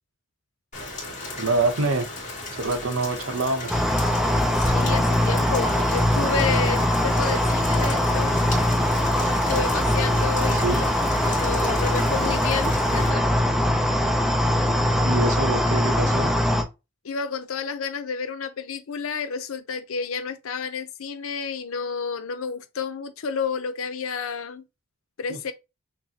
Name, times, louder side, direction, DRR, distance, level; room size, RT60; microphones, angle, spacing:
Rain, 0.7-13.1, left 2 dB, 40° left, 1.9 m, -35 dB
voice 1, 1.4-2.1 2.5-3.8 10.4-10.8 15.0-16.3 25.3-25.4, right 2 dB, 85° right, 0.8 m, -26 dB
sound 1, 3.7-16.6, left 1 dB, ahead, 0.5 m, -22 dB
voice 2, 4.5-8.3 9.5-13.2 17.0-24.7 25.2-25.5, left 5 dB, 85° left, 0.6 m, -30 dB
5.9 x 2.1 x 2.8 m
head